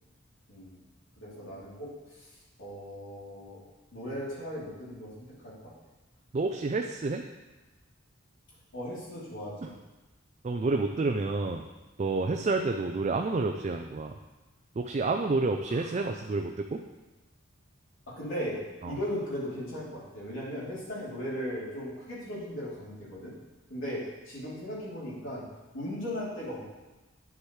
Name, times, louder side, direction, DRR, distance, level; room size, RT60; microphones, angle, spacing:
voice 1, 0.5-0.8 1.2-2.3 2.6-3.6 3.9-5.7 8.7-9.7 12.2-12.3 15.7-15.8 18.1-23.3 23.7-26.6, equal, 75° left, -7 dB, 3.2 m, -37 dB
voice 2, 6.3-7.2 9.6-9.7 10.4-11.7 12.0-14.1 14.8-16.8 18.8-19.0, right 3 dB, 35° right, 4 dB, 0.4 m, -29 dB
9.6 x 7.2 x 3.2 m, 1.1 s
head